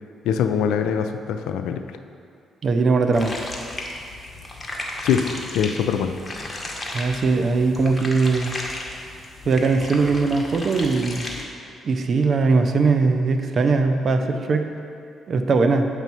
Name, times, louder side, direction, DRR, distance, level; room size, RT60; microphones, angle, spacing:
voice 1, 0.2-1.9 5.0-6.2, left 7 dB, 85° left, 7 dB, 0.3 m, -23 dB
voice 2, 2.6-3.3 6.9-8.5 9.5-11.3 11.8-14.7 15.3-15.9, right 4 dB, 55° right, 6 dB, 0.5 m, -20 dB
sound 1, 3.1-11.4, left 1 dB, 25° left, 1.1 m, -34 dB
8.1 x 3.1 x 5.4 m, 2.4 s
supercardioid pair, 70°, 0 cm